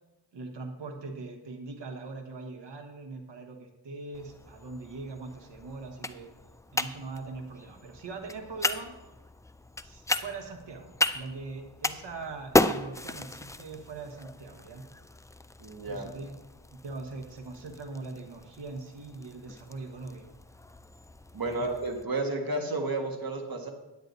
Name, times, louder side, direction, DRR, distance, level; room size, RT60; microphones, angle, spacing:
voice 1, 0.3-6.3 6.7-8.9 9.8-14.8 15.9-16.3 16.7-20.3 21.4-21.7, right 3 dB, 65° right, 4 dB, 1.3 m, -41 dB
sound 1, 4.1-22.0, left 2 dB, 10° left, 0.3 m, -35 dB
voice 2, 15.6-16.1 21.3-23.7, right 2 dB, 50° right, 3 dB, 1.7 m, -32 dB
9.4 x 8.9 x 4.0 m, 1.0 s
cardioid pair, 60°, 45 cm